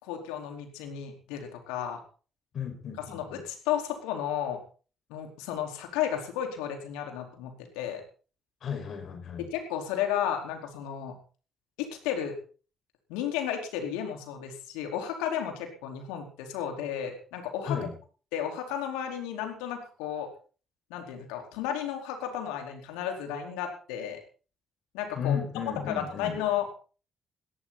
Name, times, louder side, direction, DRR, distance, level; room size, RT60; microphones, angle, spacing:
voice 1, 0.0-2.0 3.1-4.6 5.1-8.0 9.4-11.1 11.8-12.4 13.1-17.8 18.3-20.3 20.9-24.2 24.9-25.4 25.9-26.7, left 9 dB, 80° left, 3 dB, 4.5 m, -33 dB
voice 2, 2.5-3.4 8.6-9.5 17.7-17.9 25.2-26.3, left 7 dB, 60° left, 4 dB, 5.6 m, -34 dB
18.5 x 18.0 x 4.3 m, 0.40 s
hypercardioid pair, 40°, 0 cm